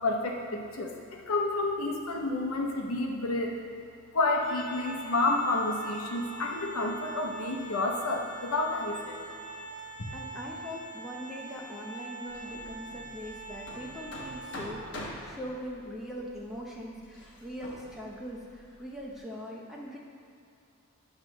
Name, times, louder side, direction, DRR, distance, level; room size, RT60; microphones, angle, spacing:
voice 1, 0.0-3.6 4.1-9.2 10.0-10.1, left 2 dB, 75° left, 0 dB, 0.9 m, -30 dB
Organ, 4.4-15.1, right 2 dB, 30° left, 1.0 m, -44 dB
voice 2, 10.1-20.0, equal, ahead, -4 dB, 0.7 m, -41 dB
Hammer, 12.3-19.2, left 1 dB, 55° left, 1.1 m, -46 dB
9.6 x 3.3 x 6.2 m, 2.5 s
head